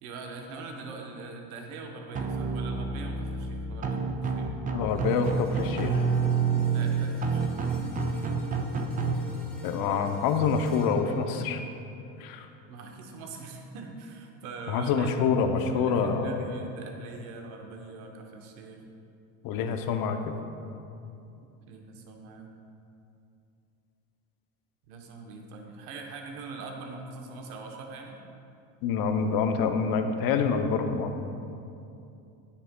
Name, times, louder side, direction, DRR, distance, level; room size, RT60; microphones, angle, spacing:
voice 1, 0.0-4.5 6.7-7.8 12.7-15.1 15.7-18.8 21.7-22.5 24.9-28.2, right 3 dB, 80° right, 2 dB, 1.0 m, -42 dB
sound 1, 2.1-9.1, right 5 dB, 20° right, 0.3 m, -28 dB
voice 2, 4.7-6.0 9.6-11.6 12.2-12.5 14.7-16.4 19.4-20.4 28.8-31.1, left 5 dB, 50° left, 7 dB, 0.7 m, -26 dB
sound 2, 4.9-13.2 13.7-13.9, left 1 dB, ahead, 1.6 m, -48 dB
9.4 x 6.8 x 2.2 m, 2.7 s
supercardioid pair, 105°, 44 cm